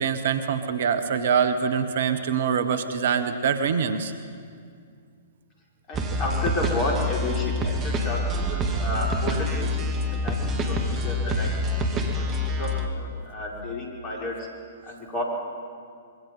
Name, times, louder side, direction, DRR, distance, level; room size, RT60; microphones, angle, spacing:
voice 1, 0.0-4.1, right 6 dB, 55° right, 10 dB, 1.4 m, -24 dB
voice 2, 5.9-9.7 10.1-11.5 11.8-14.5 14.8-15.2, left 2 dB, 30° left, -2 dB, 5.8 m, -32 dB
sound 1, 5.9-12.9, left 1 dB, 25° right, 2.5 m, -26 dB
25.5 x 23.0 x 5.6 m, 2.2 s
figure-of-eight pair, 115°, 0 cm